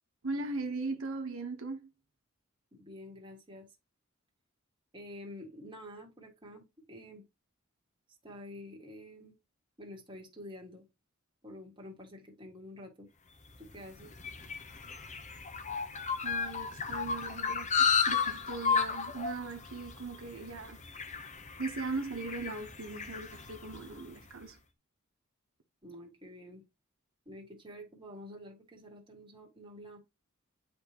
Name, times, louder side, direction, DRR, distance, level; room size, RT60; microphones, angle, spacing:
voice 1, 0.2-1.9 16.2-20.8 21.6-24.6, right 3 dB, 80° right, 1.1 m, -39 dB
voice 2, 2.7-3.7 4.9-7.2 8.2-9.3 9.8-10.9 11.4-13.1 13.6-14.1 25.8-26.6 27.3-30.0, left 1 dB, 25° right, 1.8 m, -48 dB
sound 1, 13.5-24.1, left 6 dB, 35° left, 0.8 m, -34 dB
10.0 x 3.4 x 2.9 m
head